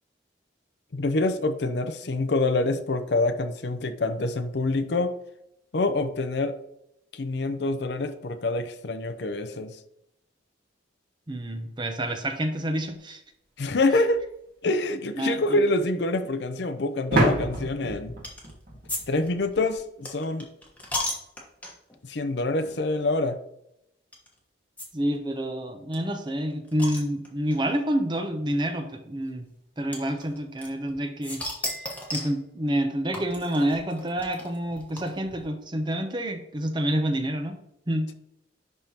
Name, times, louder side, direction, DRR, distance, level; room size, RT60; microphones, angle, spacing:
voice 1, 0.9-5.1 5.7-6.5 7.1-9.8 13.6-14.2 14.6-18.2 19.1-20.5 22.0-23.4, left 2 dB, 65° left, 8 dB, 0.6 m, -26 dB
voice 2, 11.3-13.2 15.2-15.6 24.9-29.4 29.8-31.4 32.1-37.6 37.9-38.1, right 1 dB, 25° right, 6 dB, 0.7 m, -28 dB
sound 1, 14.1-14.2 17.1-19.7, right 1 dB, 50° right, 1.8 m, -27 dB
sound 2, 18.2-18.5 18.9-19.0 19.3-22.0 22.6-22.7 23.0-23.1 24.1-24.3 24.8-24.9 25.1-25.2 25.4-25.5 25.9-27.6 28.5-28.6 29.9-30.9 31.2-32.4 33.1-35.4, left 1 dB, 10° left, 1.1 m, -35 dB
10.5 x 3.6 x 2.9 m, 0.79 s
head